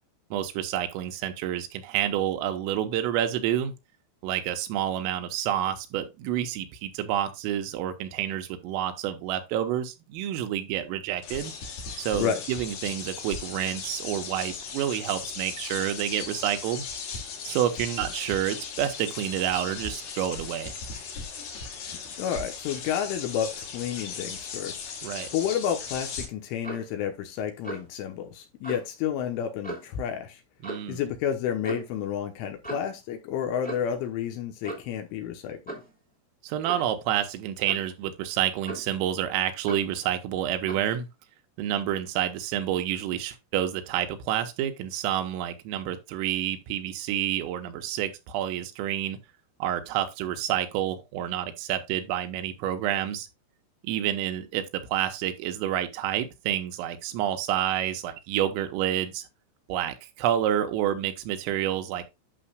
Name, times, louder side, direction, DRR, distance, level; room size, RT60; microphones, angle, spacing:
voice 1, 0.3-3.7 4.2-11.5 12.0-16.9 17.5-20.7 25.0-25.3 30.6-31.0 36.4-41.1 41.6-49.2 49.6-53.3 53.8-59.2 59.7-62.0, right 11 dB, 85° right, 3.6 m, -29 dB
sound 1, 11.2-26.3, left 5 dB, 55° left, 3.1 m, -37 dB
voice 2, 22.2-24.8 25.3-30.4 30.9-35.6, left 9 dB, 80° left, 3.3 m, -30 dB
Clock, 26.6-26.9 27.6-27.9 28.6-28.9 29.6-30.0 30.6-30.9 31.6-31.9 32.6-33.0 33.6-34.0 34.6-35.0 35.7-35.9 36.6-36.9 37.7-37.9 38.6-39.0 39.7-39.9 40.7-40.9, right 2 dB, 10° left, 0.4 m, -38 dB
11.5 x 6.3 x 2.3 m
omnidirectional pair, 5.8 m